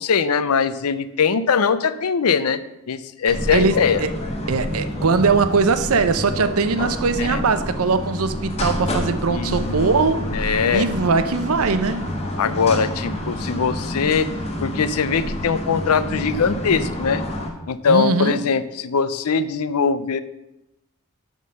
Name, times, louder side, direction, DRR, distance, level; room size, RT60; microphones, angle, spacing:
voice 1, 0.0-2.6 2.9-4.0 7.2-7.4 9.3-9.9 10.3-10.9 12.4-14.3 14.6-17.2 17.7-20.2, left 6 dB, 85° left, 0.5 m, -21 dB
sound 1, 3.3-17.5, left 1 dB, 30° left, 1.2 m, -28 dB
voice 2, 3.5-4.1 4.5-12.0 17.9-18.4, right 4 dB, 80° right, 0.6 m, -21 dB
11.0 x 3.7 x 6.3 m
head